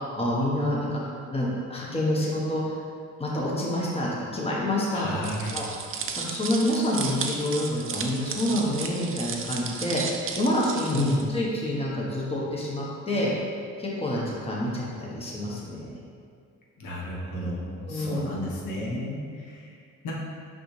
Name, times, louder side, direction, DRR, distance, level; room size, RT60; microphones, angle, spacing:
voice 1, 0.2-1.0 1.3-2.8 3.2-5.1 5.5-5.7 6.2-10.0 10.4-13.3 13.8-16.0 17.8-18.3, left 1 dB, 20° left, -5 dB, 1.2 m, -27 dB
voice 2, 4.9-5.5 10.9-11.2 16.8-20.1, left 1 dB, 90° left, -3 dB, 1.3 m, -31 dB
sound 1, 5.2-11.2, right 5 dB, 45° right, 0.7 m, -34 dB
5.9 x 5.1 x 3.3 m, 2.2 s
cardioid pair, 90°, 30 cm